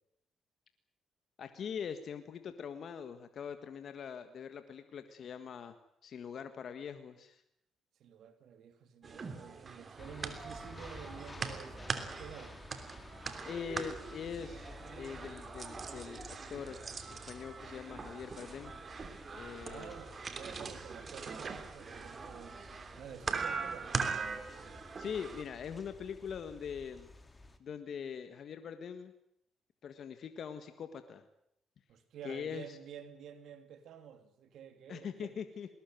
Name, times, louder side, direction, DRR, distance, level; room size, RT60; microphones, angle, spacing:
voice 1, 1.4-5.8 6.0-7.4 13.4-14.7 14.9-16.8 17.1-18.7 19.3-19.9 25.0-27.1 27.6-29.1 29.8-31.2 32.2-32.8 34.9-35.8, left 7 dB, 60° left, 1.7 m, -42 dB
voice 2, 8.0-12.6 19.6-22.6 23.0-23.9 31.9-35.4, right 8 dB, 75° right, 3.0 m, -50 dB
sound 1, 9.0-25.4, right 5 dB, 40° right, 3.1 m, -41 dB
sound 2, 10.0-27.6, left 2 dB, 20° left, 2.8 m, -53 dB
20.5 x 19.5 x 9.3 m
cardioid pair, 90°, 0 cm